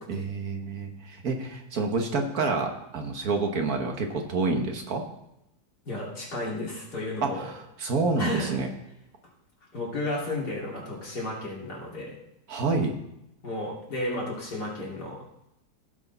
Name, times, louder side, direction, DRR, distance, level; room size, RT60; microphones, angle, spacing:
voice 1, 0.1-5.0 7.2-7.5 7.8-8.7 12.5-12.9, right 3 dB, 60° right, 3 dB, 1.5 m, -28 dB
voice 2, 5.9-7.5 8.2-8.5 9.7-12.1 13.4-15.2, left 1 dB, 65° left, -4 dB, 3.2 m, -33 dB
16.0 x 6.5 x 4.0 m, 0.84 s
omnidirectional pair, 1.9 m